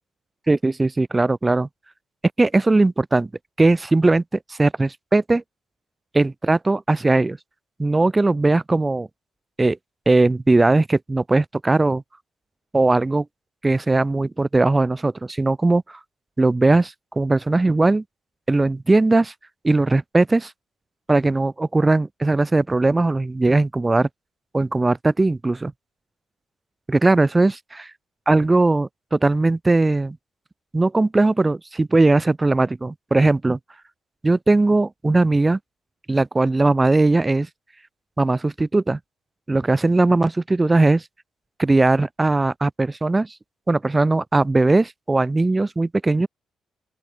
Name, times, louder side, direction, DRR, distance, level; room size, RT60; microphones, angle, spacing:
voice 1, 0.5-1.7 2.4-3.3 3.6-5.4 6.1-7.4 7.8-9.1 9.6-9.8 10.1-12.0 12.7-13.3 13.6-16.0 16.4-18.0 18.5-19.3 19.6-20.5 21.1-24.1 24.5-25.7 26.9-27.8 28.3-30.2 30.7-33.6 34.2-35.6 36.1-37.5 38.2-39.0 39.5-41.0 41.6-43.3 43.7-46.3, right 2 dB, 15° right, 0.6 m, -19 dB
open air
cardioid pair, 145°, 0 cm